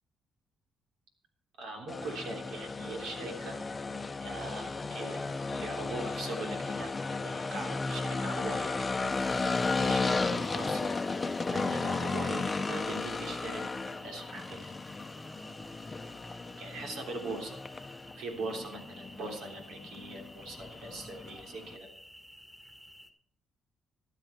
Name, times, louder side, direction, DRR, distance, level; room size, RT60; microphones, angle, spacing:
voice 1, 1.6-3.6 4.2-9.1 9.8-10.9 11.5-14.7 16.6-17.6 18.2-21.9, right 2 dB, 85° right, 1 dB, 3.4 m, -41 dB
sound 1, 1.9-21.8, left 3 dB, 25° left, 0.7 m, -34 dB
sound 2, 9.1-23.1, equal, ahead, 1.8 m, -53 dB
13.0 x 12.0 x 4.5 m, 0.69 s
cardioid pair, 90°, 0 cm